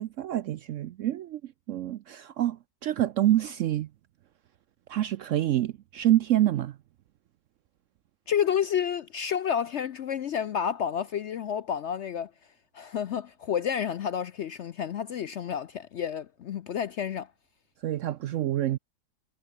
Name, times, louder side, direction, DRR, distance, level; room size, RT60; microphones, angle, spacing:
voice 1, 0.0-3.9 4.9-6.8 17.8-18.8, right 13 dB, 70° right, 0.7 m, -27 dB
voice 2, 8.3-12.3 12.7-17.3, left 8 dB, 65° left, 0.7 m, -30 dB
omnidirectional pair, 1.7 m